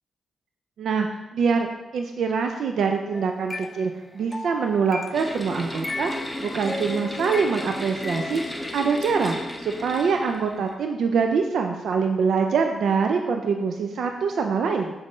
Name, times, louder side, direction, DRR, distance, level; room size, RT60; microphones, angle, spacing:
voice 1, 0.8-1.7 1.9-14.9, right 5 dB, 75° right, 4 dB, 0.4 m, -24 dB
sound 1, 3.1-5.3 5.8-8.6, left 2 dB, 20° left, 0.3 m, -36 dB
sound 2, 5.1-10.7, left 1 dB, 5° left, 1.0 m, -34 dB
7.3 x 6.4 x 3.1 m, 1.1 s
cardioid pair, 80°, 0 cm